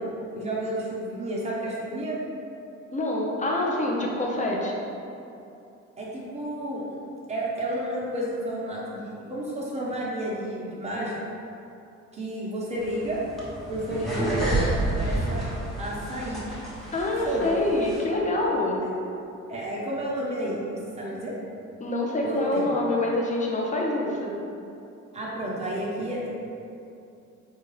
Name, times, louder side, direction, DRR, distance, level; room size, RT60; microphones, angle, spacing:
voice 1, 0.0-2.2 6.0-6.8 7.3-11.2 12.1-13.2 13.7-15.5 15.8-16.4 17.2-17.5 18.8-18.9 19.5-20.6 21.0-21.3 22.2-22.7 25.1-26.3, right 1 dB, 20° right, -5 dB, 0.9 m, -31 dB
voice 2, 2.9-4.7 16.9-18.8 21.8-24.3, left 1 dB, 25° left, -2 dB, 0.7 m, -26 dB
sound 1, 12.8-18.0, right 1 dB, ahead, 1.0 m, -30 dB
4.2 x 2.4 x 3.2 m, 2.7 s
cardioid pair, 90°, 30 cm